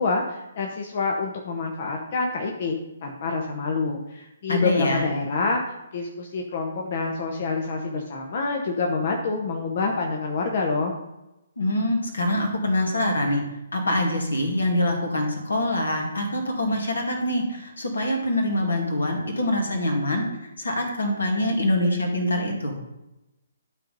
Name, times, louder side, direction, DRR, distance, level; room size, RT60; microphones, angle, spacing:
voice 1, 0.0-2.7 3.0-5.6 5.9-10.9, left 4 dB, 45° left, 1 dB, 1.0 m, -27 dB
voice 2, 4.5-5.1 11.6-13.4 13.7-22.7, left 1 dB, 70° left, 2 dB, 2.2 m, -24 dB
12.0 x 3.9 x 5.3 m, 0.96 s
figure-of-eight pair, 130°, 0 cm